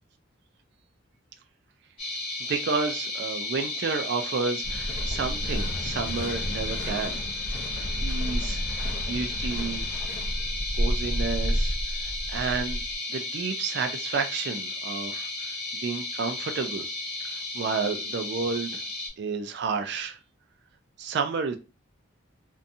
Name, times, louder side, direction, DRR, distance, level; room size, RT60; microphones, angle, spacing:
sound 1, 2.0-19.1, left 2 dB, 25° left, 1.3 m, -34 dB
voice 1, 2.4-7.2 7.6-7.7 8.0-8.6 9.1-9.8 10.8-11.7 12.0-12.8 13.1-16.8 17.2-18.8 19.2-20.2 21.0-21.6, right 5 dB, 55° right, 0.3 m, -31 dB
sound 2, 4.6-12.9, equal, 55° left, 0.6 m, -31 dB
2.6 x 2.2 x 2.6 m
head